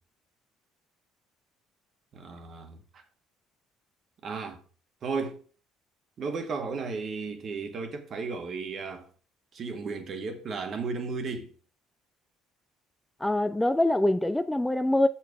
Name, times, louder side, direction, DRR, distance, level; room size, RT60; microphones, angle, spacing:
voice 1, 2.1-3.0 4.2-4.6 5.0-5.4 6.2-9.1 9.5-11.5, right 4 dB, 45° right, 1.6 m, -34 dB
voice 2, 13.2-15.1, left 1 dB, 10° left, 0.5 m, -24 dB
6.7 x 5.9 x 4.8 m
hypercardioid pair, 60°, 0 cm